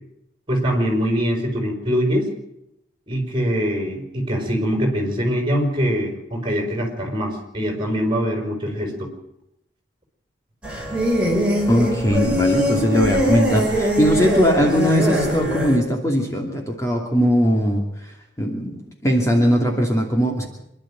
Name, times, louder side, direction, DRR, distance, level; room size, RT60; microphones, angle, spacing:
voice 1, 0.5-2.3 3.1-9.1, equal, 25° right, 3 dB, 5.7 m, -23 dB
sound 1, 10.6-15.8, equal, 5° right, 5.7 m, -21 dB
voice 2, 11.7-20.5, equal, 15° left, 1 dB, 2.6 m, -20 dB
26.0 x 12.0 x 8.9 m, 0.82 s
head